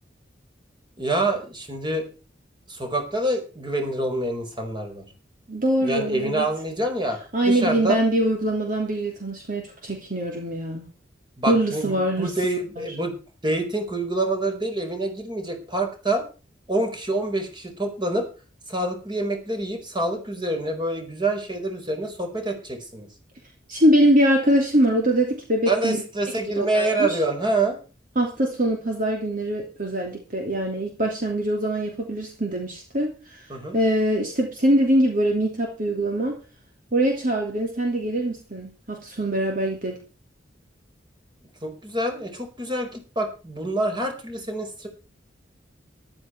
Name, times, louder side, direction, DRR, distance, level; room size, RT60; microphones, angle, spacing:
voice 1, 1.0-2.1 2.7-5.0 5.8-8.0 11.4-13.1 13.4-16.2 16.7-18.3 18.7-23.1 25.7-27.8 33.5-33.8 41.6-44.9, right 2 dB, 25° right, 4 dB, 5.0 m, -26 dB
voice 2, 5.5-6.5 7.3-10.9 11.5-12.9 23.7-26.0 26.6-27.2 28.1-36.4 36.9-40.0, right 1 dB, 50° right, 2 dB, 2.9 m, -23 dB
14.0 x 12.0 x 4.6 m, 0.34 s
head